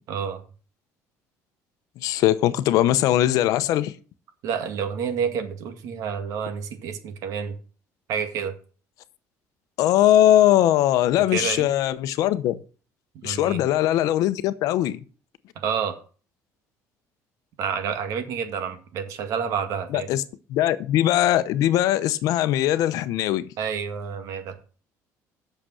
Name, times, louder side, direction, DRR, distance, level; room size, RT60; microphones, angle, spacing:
voice 1, 0.1-0.4 4.4-7.6 8.1-8.5 11.3-11.7 13.2-13.6 15.6-15.9 17.6-20.1 23.6-24.6, right 7 dB, 60° right, 2.0 m, -29 dB
voice 2, 2.0-3.9 9.8-12.6 13.2-15.0 19.9-20.2 20.5-23.4, left 13 dB, 70° left, 0.8 m, -20 dB
8.9 x 6.8 x 6.3 m
cardioid pair, 155°, 6 cm